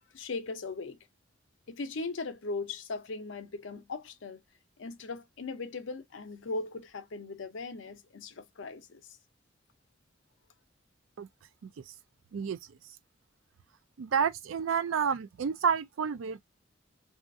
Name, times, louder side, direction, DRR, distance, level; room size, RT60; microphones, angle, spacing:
voice 1, 0.1-1.0 1.7-4.4 4.8-9.1, left 3 dB, 70° left, 0.6 m, -38 dB
voice 2, 14.0-16.4, right 6 dB, 75° right, 0.4 m, -29 dB
2.7 x 2.4 x 2.5 m
head